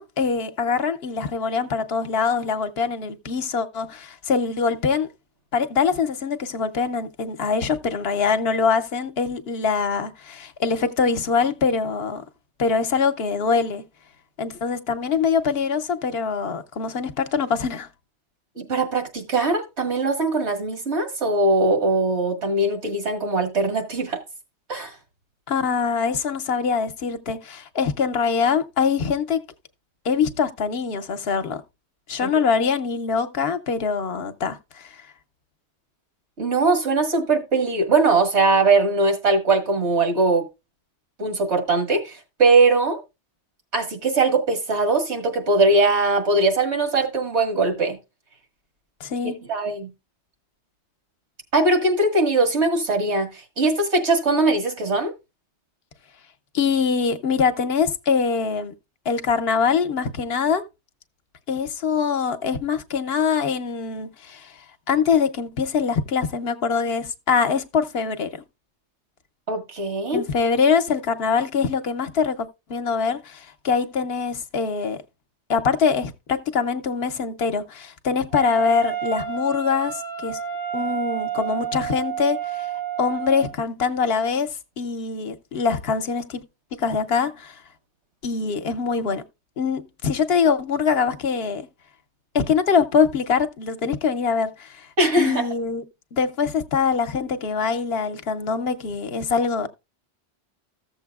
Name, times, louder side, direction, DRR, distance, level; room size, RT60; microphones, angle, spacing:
voice 1, 0.0-5.1 5.5-12.2 12.6-13.8 14.4-17.9 25.5-29.4 30.0-31.6 32.1-34.9 49.0-49.4 56.5-58.7 59.1-60.6 61.5-68.3 70.1-75.0 75.5-80.4 80.7-82.7 83.0-84.5 84.8-86.4 86.8-87.5 88.2-89.2 89.6-91.7 92.3-94.9 95.2-95.8 96.1-99.7, left 5 dB, 65° left, 0.9 m, -23 dB
voice 2, 18.6-24.2 24.7-24.9 32.2-32.3 36.4-40.5 41.2-43.0 43.7-48.0 49.5-49.9 51.5-53.3 53.6-55.1 69.5-70.2 95.0-95.4, right 3 dB, 80° right, 2.1 m, -21 dB
Wind instrument woodwind instrument, 78.3-83.6, right 9 dB, 60° right, 1.1 m, -30 dB
14.5 x 7.1 x 2.3 m
omnidirectional pair, 1.1 m